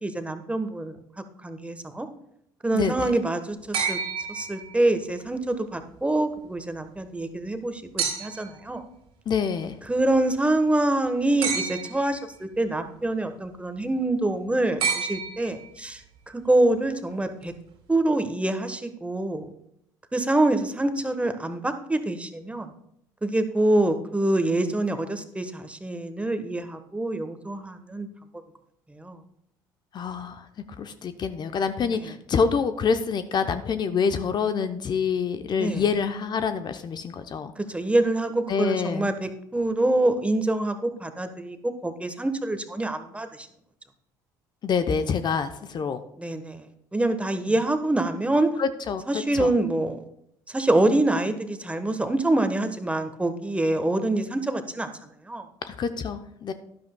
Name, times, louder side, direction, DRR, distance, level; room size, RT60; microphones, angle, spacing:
voice 1, 0.0-2.1 2.6-4.0 4.3-8.8 9.9-17.5 17.9-19.5 20.1-22.7 23.2-28.1 28.9-29.2 32.0-32.1 35.6-35.8 37.6-43.5 46.2-48.5 49.1-50.0 50.5-55.5, right 2 dB, 10° right, 8 dB, 1.1 m, -26 dB
voice 2, 2.7-3.1 9.3-9.8 29.9-30.5 30.8-37.5 38.5-39.1 44.6-46.0 48.6-49.0 49.3-49.5 55.7-56.5, left 6 dB, 45° left, 9 dB, 0.7 m, -26 dB
sound 1, 3.7-5.1 8.0-8.6 11.4-12.2 14.8-15.8 17.4-17.5, right 6 dB, 65° right, 2.3 m, -30 dB
12.5 x 10.5 x 2.2 m, 0.73 s
hypercardioid pair, 65°, 10 cm